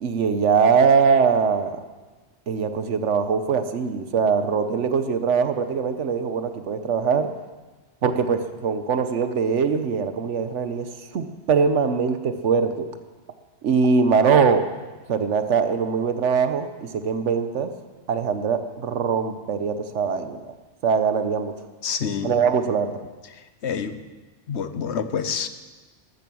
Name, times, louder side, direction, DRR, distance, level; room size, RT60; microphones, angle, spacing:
voice 1, 0.0-1.8 2.5-7.3 8.0-10.9 11.1-12.9 13.6-14.7 15.1-17.7 18.1-20.4 20.8-21.5 22.2-23.0, right 6 dB, 85° right, 9 dB, 1.2 m, -22 dB
voice 2, 21.8-22.4 23.3-24.0 24.5-25.5, left 7 dB, 70° left, 11 dB, 1.2 m, -28 dB
14.0 x 13.5 x 6.2 m, 1.3 s
omnidirectional pair, 1.2 m